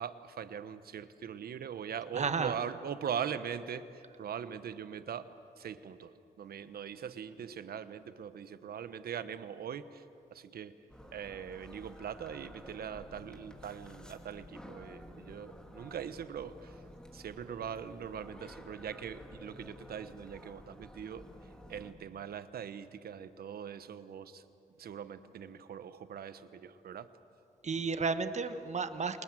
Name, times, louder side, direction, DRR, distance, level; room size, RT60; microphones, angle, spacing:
voice 1, 0.0-5.3 5.6-10.0 10.3-10.7 11.1-16.8 17.1-24.4 24.8-27.1, right 8 dB, 75° right, 12 dB, 1.1 m, -41 dB
voice 2, 2.1-2.5 27.6-29.2, right 5 dB, 45° right, 10 dB, 1.5 m, -32 dB
sound 1, 10.9-21.9, left 1 dB, 5° left, 3.0 m, -52 dB
28.5 x 20.5 x 7.7 m, 2.6 s
cardioid pair, 70°, 16 cm